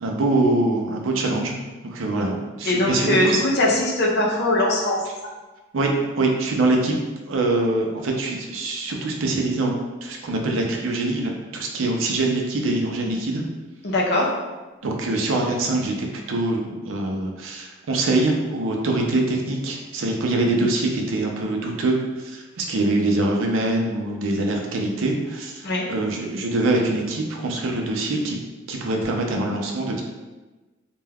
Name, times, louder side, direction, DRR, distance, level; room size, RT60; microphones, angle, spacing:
voice 1, 0.0-1.6 1.8-3.4 5.7-6.9 7.3-9.7 10.0-13.4 14.8-28.4 28.7-30.0, right 2 dB, 80° right, 1 dB, 0.5 m, -24 dB
voice 2, 2.7-5.0 13.8-14.3 25.6-25.9, left 1 dB, 55° left, -3 dB, 0.5 m, -21 dB
2.2 x 2.2 x 3.3 m, 1.2 s
head